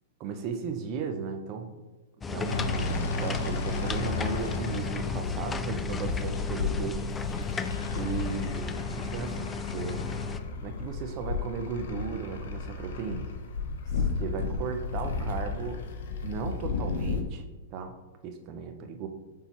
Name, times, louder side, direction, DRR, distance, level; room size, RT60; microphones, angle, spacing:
voice 1, 0.2-1.8 2.3-7.0 7.3-7.5 7.9-10.0 10.6-13.3 13.9-15.8 16.2-17.4 17.7-19.1, right 5 dB, 40° right, 6 dB, 0.8 m, -36 dB
sound 1, 2.2-10.4, left 5 dB, 15° left, 0.3 m, -34 dB
sound 2, 2.4-17.2, left 4 dB, 70° left, 0.8 m, -33 dB
8.1 x 3.7 x 3.1 m, 1.1 s
hypercardioid pair, 125°, 0 cm